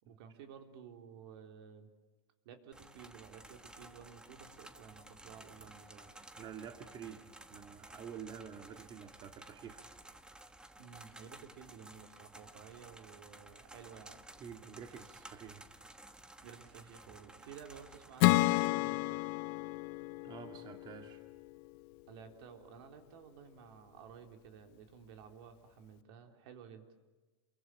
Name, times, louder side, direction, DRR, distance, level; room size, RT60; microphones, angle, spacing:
voice 1, 0.0-1.9 2.4-6.1 10.8-14.2 16.4-19.2 22.1-26.9, right 7 dB, 70° right, 5 dB, 3.9 m, -54 dB
sound 1, 2.7-18.7, right 1 dB, 5° right, 1.3 m, -55 dB
voice 2, 6.4-9.9 14.4-15.7 20.2-21.2, right 8 dB, 30° right, 5 dB, 2.0 m, -49 dB
Acoustic guitar / Strum, 18.2-21.7, left 21 dB, 55° left, 0.8 m, -31 dB
28.5 x 23.0 x 8.7 m, 1.2 s
supercardioid pair, 140°, 14 cm